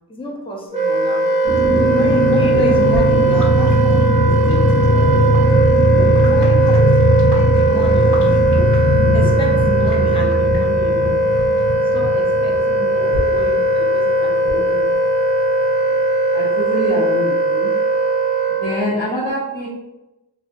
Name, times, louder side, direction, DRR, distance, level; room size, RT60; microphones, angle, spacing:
voice 1, 0.1-1.3 1.9-4.0 4.5-5.3 6.0-6.8 7.3-8.4 9.1-11.2 11.9-15.0, left 2 dB, 15° left, -2 dB, 0.5 m, -29 dB
Wind instrument woodwind instrument, 0.7-18.9, right 2 dB, 15° right, 0.9 m, -18 dB
sound 1, 1.4-13.8 14.1-14.2 14.4-14.7, equal, 65° left, 1.1 m, -18 dB
voice 2, 16.3-17.7 18.5-19.7, equal, 85° left, -11 dB, 0.8 m, -24 dB
2.6 x 2.2 x 2.5 m, 1.0 s
wide cardioid pair, 50°, 43 cm